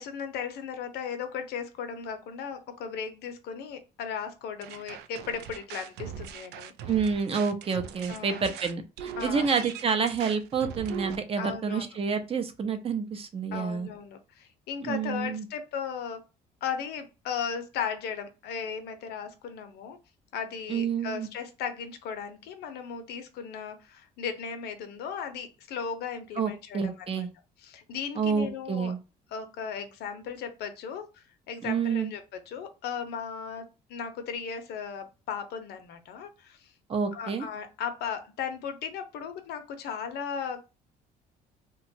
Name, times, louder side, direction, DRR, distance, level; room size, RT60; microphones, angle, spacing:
voice 1, 0.0-6.9 8.1-8.4 9.2-9.7 11.4-11.8 13.5-16.2 16.6-20.0 20.3-27.3 27.6-28.9 29.3-36.7 37.1-40.6, left 7 dB, 80° left, 8 dB, 0.6 m, -36 dB
sound 1, 4.6-11.2, right 8 dB, 80° right, 0.4 m, -41 dB
voice 2, 6.9-13.9 14.8-15.5 20.7-21.3 26.4-27.3 28.2-29.0 31.6-32.1 36.9-37.5, right 6 dB, 35° right, 8 dB, 0.6 m, -28 dB
2.9 x 2.2 x 2.6 m, 0.29 s
cardioid pair, 110°, 17 cm